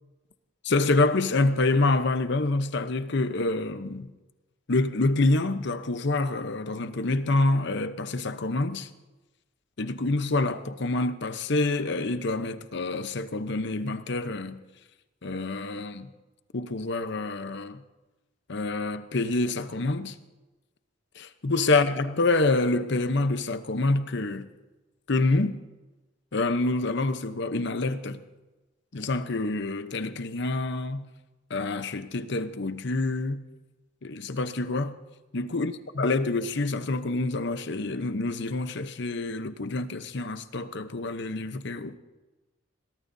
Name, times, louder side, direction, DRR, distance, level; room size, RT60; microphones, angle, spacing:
voice 1, 0.6-4.1 4.7-8.9 9.8-14.6 15.2-16.1 16.5-17.8 18.5-20.1 21.2-24.5 25.1-25.6 26.3-28.2 28.9-31.1 31.5-33.4 34.0-34.9 35.3-42.0, left 2 dB, 65° left, 0.9 m, -27 dB
22.0 x 18.0 x 2.7 m
head